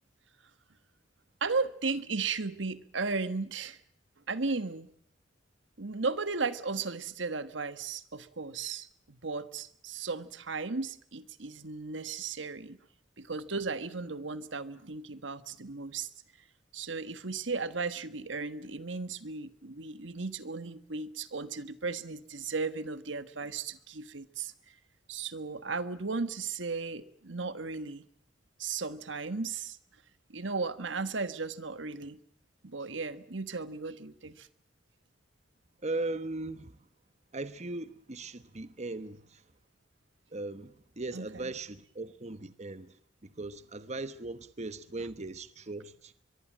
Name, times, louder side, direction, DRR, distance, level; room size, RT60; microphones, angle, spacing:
voice 1, 1.4-3.8 4.3-4.9 5.8-12.8 13.2-16.1 16.7-24.5 25.1-28.0 28.6-29.8 30.3-32.2 32.6-34.5 41.1-41.5, right 4 dB, 75° right, 1.5 m, -35 dB
voice 2, 35.8-36.7 37.3-39.4 40.3-43.0 43.2-46.1, right 2 dB, 35° right, 1.1 m, -38 dB
23.5 x 23.0 x 7.5 m
head